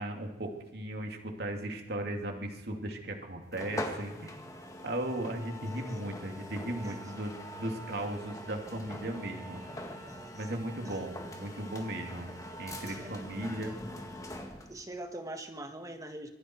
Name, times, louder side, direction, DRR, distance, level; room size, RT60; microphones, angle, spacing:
voice 1, 0.0-4.3 4.8-9.6 10.3-12.3 12.6-13.8, right 1 dB, 65° right, 3 dB, 3.0 m, -37 dB
sound 1, 3.5-14.8, left 1 dB, 20° left, 2.1 m, -43 dB
voice 2, 10.1-10.6 10.8-11.0 12.9-13.1 14.7-16.3, right 1 dB, 20° right, 5 dB, 1.8 m, -43 dB
25.5 x 21.0 x 4.8 m, 1.1 s
head